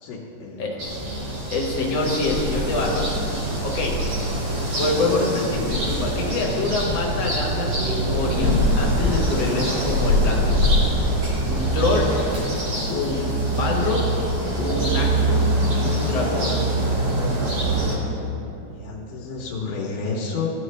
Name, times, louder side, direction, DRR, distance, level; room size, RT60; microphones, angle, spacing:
voice 1, 0.0-0.8 18.7-20.5, left 4 dB, 80° left, -4 dB, 2.4 m, -30 dB
sound 1, 0.8-18.0, right 1 dB, 50° right, 3.1 m, -23 dB
voice 2, 1.5-3.0 3.6-3.9 4.7-10.6 11.4-12.1 12.9-14.0 14.6-15.5 15.8-16.5, left 3 dB, 60° left, -1 dB, 2.0 m, -25 dB
15.0 x 6.5 x 3.2 m, 2.8 s
omnidirectional pair, 3.7 m